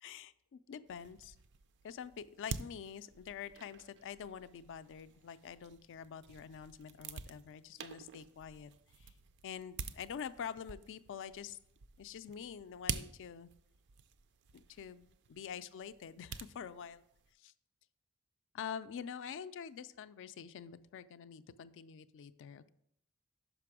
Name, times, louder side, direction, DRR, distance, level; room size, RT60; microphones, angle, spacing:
voice 1, 0.0-1.4 1.8-8.7 9.0-9.1 9.4-11.6 12.0-13.5 14.5-17.0 17.4-17.5 18.5-22.7, left 7 dB, 55° left, 14 dB, 0.3 m, -46 dB
sound 1, 0.9-17.3, right 6 dB, 55° right, 0.4 m, -48 dB
5.9 x 5.2 x 4.8 m, 0.73 s
head